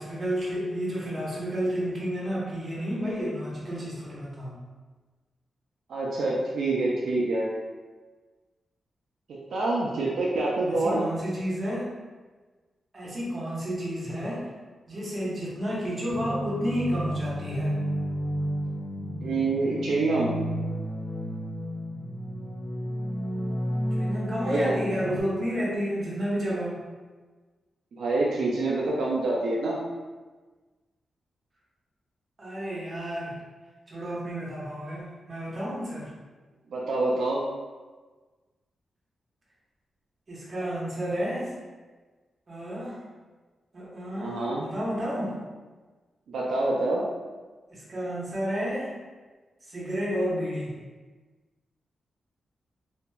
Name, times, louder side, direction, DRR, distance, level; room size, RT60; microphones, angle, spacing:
voice 1, 0.0-4.6 10.7-11.9 12.9-14.5 14.9-17.8 23.9-26.8 32.4-33.3 33.9-36.1 40.3-41.5 42.5-43.0 43.7-45.3 47.7-48.9 49.7-50.7, equal, 35° right, -7 dB, 0.9 m, -31 dB
voice 2, 5.9-7.5 9.3-11.0 19.2-20.3 24.4-24.8 27.9-29.8 36.7-37.4 44.1-44.6 46.3-47.0, right 2 dB, 80° right, -4 dB, 0.4 m, -26 dB
sound 1, 16.1-25.2, equal, 55° left, 0.5 m, -32 dB
2.8 x 2.5 x 2.2 m, 1.3 s
wide cardioid pair, 110°, 0 cm